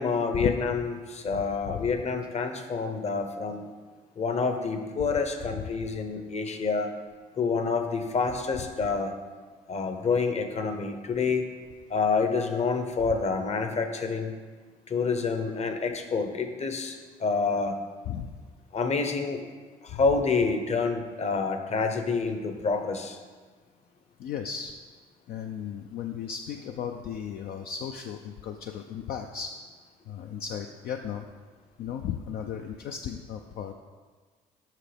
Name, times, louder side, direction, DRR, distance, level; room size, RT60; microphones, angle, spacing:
voice 1, 0.0-3.7 4.2-6.9 7.4-9.1 9.7-11.5 11.9-14.3 14.9-17.8 18.7-19.4 19.8-23.2, left 4 dB, 40° left, 6 dB, 0.9 m, -28 dB
voice 2, 1.3-1.9 5.0-5.1 5.5-5.6 18.1-18.3 19.9-20.0 24.2-24.7 25.3-29.5 30.1-31.3 31.8-33.7, left 8 dB, 60° left, 4 dB, 0.4 m, -35 dB
7.4 x 5.5 x 3.4 m, 1.4 s
hypercardioid pair, 60°, 17 cm